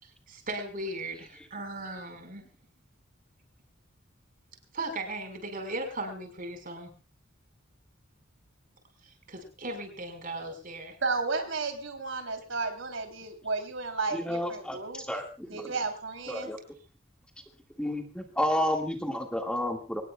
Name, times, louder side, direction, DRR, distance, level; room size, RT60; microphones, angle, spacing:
voice 1, 0.0-2.5 4.7-6.9 9.0-11.0, right 2 dB, 45° right, 6 dB, 4.7 m, -37 dB
voice 2, 11.0-15.1 15.5-16.5, right 3 dB, 85° right, 5 dB, 3.1 m, -33 dB
voice 3, 14.2-14.8 15.1-15.5 16.3-16.6 17.8-20.0, left 1 dB, 5° left, 2 dB, 1.9 m, -30 dB
24.5 x 19.5 x 2.3 m, 0.30 s
head